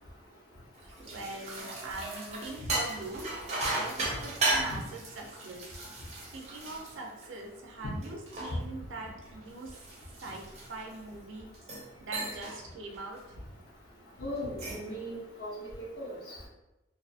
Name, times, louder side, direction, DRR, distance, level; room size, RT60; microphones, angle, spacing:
sound 1, 0.8-7.6 8.0-11.0 11.5-11.9 12.1-12.6 12.9-13.2 14.4-14.9, right 2 dB, 35° right, 0.6 m, -36 dB
voice 1, 1.0-3.2 3.7-5.6 6.3-9.8 10.2-10.4 10.7-11.5 12.0-13.4, right 2 dB, 85° right, 0 dB, 0.5 m, -42 dB
voice 2, 14.2-15.7 16.0-16.4, left 1 dB, 80° left, -6 dB, 0.8 m, -38 dB
2.6 x 2.4 x 2.4 m, 0.98 s
head